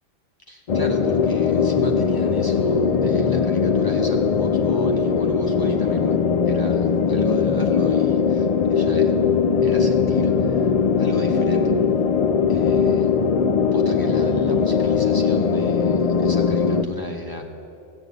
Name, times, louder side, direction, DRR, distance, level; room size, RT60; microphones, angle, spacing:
voice 1, 0.5-6.2 6.5-9.1 9.6-10.7 11.0-11.7 12.5-13.1 13.7-17.5, left 1 dB, 20° left, 1 dB, 1.3 m, -34 dB
sound 1, 0.7-16.8, left 6 dB, 75° left, 0.3 m, -20 dB
15.5 x 6.7 x 9.3 m, 2.6 s
omnidirectional pair, 1.3 m